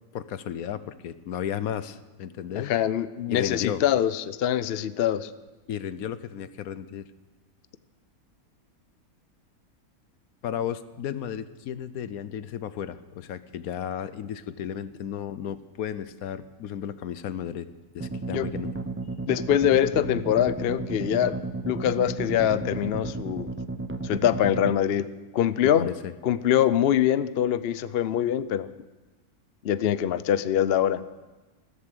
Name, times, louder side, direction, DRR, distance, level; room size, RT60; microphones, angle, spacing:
voice 1, 0.1-2.7 3.3-3.8 5.7-7.1 10.4-17.7 17.9-18.7 25.8-26.1, left 9 dB, 75° left, 14 dB, 1.2 m, -34 dB
voice 2, 2.6-5.3 18.3-18.5 19.3-21.4 21.7-23.5 24.0-25.1 25.3-25.9 26.2-28.7 29.6-31.0, left 10 dB, 60° left, 14 dB, 0.7 m, -24 dB
sound 1, 18.0-24.8, right 3 dB, 15° right, 0.4 m, -33 dB
15.0 x 14.0 x 6.7 m, 1.2 s
omnidirectional pair, 1.6 m